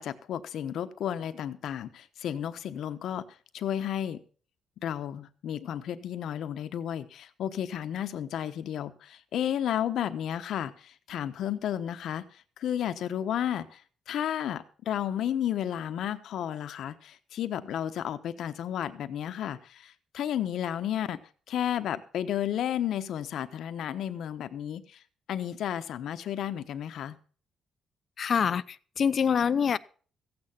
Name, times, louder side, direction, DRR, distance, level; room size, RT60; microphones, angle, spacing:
voice 1, 0.0-3.2 3.5-4.2 4.8-12.2 12.6-13.8 14.1-21.2 21.5-24.8 25.3-27.2, left 10 dB, 75° left, 1.1 m, -32 dB
voice 2, 28.2-28.6 29.0-29.8, left 7 dB, 50° left, 0.6 m, -24 dB
15.0 x 8.8 x 6.0 m
cardioid pair, 90°, 0 cm